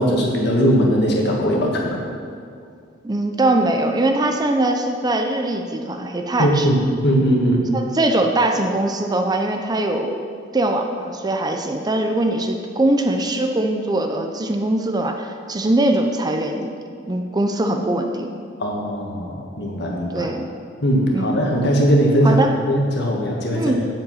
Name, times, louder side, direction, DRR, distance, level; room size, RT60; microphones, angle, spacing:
voice 1, 0.0-2.1 6.4-7.6 18.6-20.3 20.8-23.9, equal, 60° left, -1 dB, 1.6 m, -19 dB
voice 2, 3.0-6.7 7.7-10.1 10.5-16.7 17.1-18.3 20.1-20.5 21.1-21.4 22.2-22.5 23.5-23.9, right 1 dB, 20° right, 4 dB, 0.6 m, -21 dB
7.7 x 7.6 x 5.7 m, 2.3 s
head